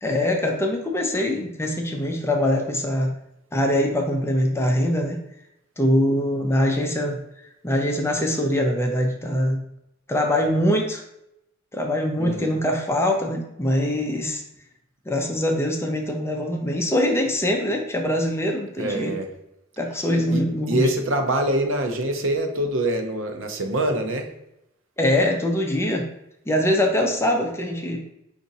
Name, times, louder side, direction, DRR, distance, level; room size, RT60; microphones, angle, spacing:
voice 1, 0.0-3.1 3.5-5.2 5.8-7.2 7.6-9.6 10.1-11.0 11.7-14.4 15.1-19.1 19.8-20.9 25.0-26.1 26.5-28.0, left 1 dB, 15° left, 2 dB, 0.5 m, -23 dB
voice 2, 12.2-12.5 18.8-19.3 20.3-24.3, right 1 dB, 75° right, 5 dB, 0.7 m, -25 dB
4.9 x 2.6 x 4.0 m, 0.81 s
head